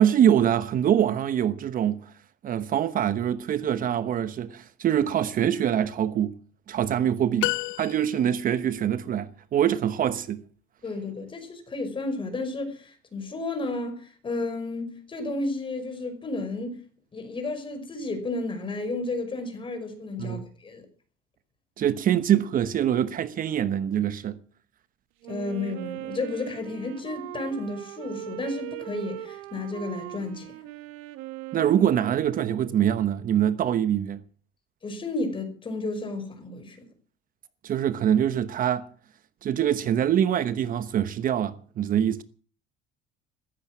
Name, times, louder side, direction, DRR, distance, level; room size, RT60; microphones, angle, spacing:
voice 1, 0.0-2.1 2.4-6.3 6.7-7.5 7.8-10.4 20.2-20.4 21.8-24.4 31.5-34.2 37.6-38.8 39.4-42.2, right 10 dB, 45° right, 1.0 m, -24 dB
sound 1, 7.4-8.5, left 21 dB, 80° left, 0.7 m, -30 dB
voice 2, 10.8-16.8 17.1-20.9 25.3-30.5 34.8-36.8, left 2 dB, 25° left, 5.4 m, -32 dB
Wind instrument woodwind instrument, 25.2-33.0, right 15 dB, 85° right, 2.0 m, -39 dB
15.5 x 15.0 x 6.1 m
cardioid pair, 120°, 20 cm